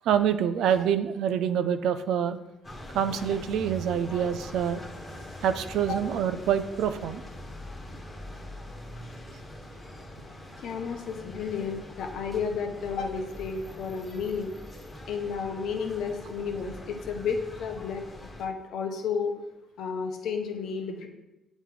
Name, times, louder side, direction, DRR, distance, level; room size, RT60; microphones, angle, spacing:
voice 1, 0.1-2.4 2.9-4.8 5.4-7.2, right 8 dB, 85° right, 11 dB, 0.3 m, -26 dB
sound 1, 2.6-18.5, left 1 dB, 20° left, 1.3 m, -43 dB
voice 2, 10.6-14.6 15.1-18.0 18.4-19.3 19.8-21.1, left 5 dB, 75° left, 4 dB, 0.8 m, -32 dB
8.2 x 3.0 x 3.8 m, 0.99 s
cardioid pair, 90°, 0 cm